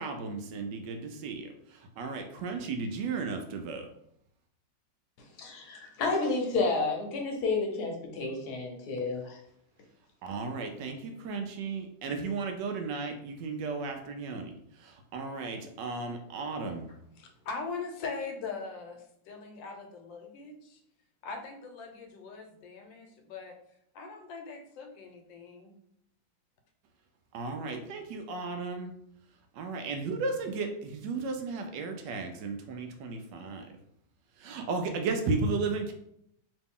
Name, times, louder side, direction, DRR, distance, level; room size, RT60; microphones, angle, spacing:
voice 1, 0.0-1.5 2.0-3.9 10.2-14.5 14.8-16.9 27.3-28.9 29.6-33.7 34.4-35.9, right 4 dB, 75° right, 5 dB, 1.2 m, -34 dB
voice 2, 5.4-9.4, left 3 dB, 65° left, 1 dB, 1.2 m, -30 dB
voice 3, 16.9-20.8 21.2-23.6 23.9-25.7, left 4 dB, 85° left, 4 dB, 1.4 m, -41 dB
3.0 x 3.0 x 3.6 m, 0.73 s
omnidirectional pair, 2.0 m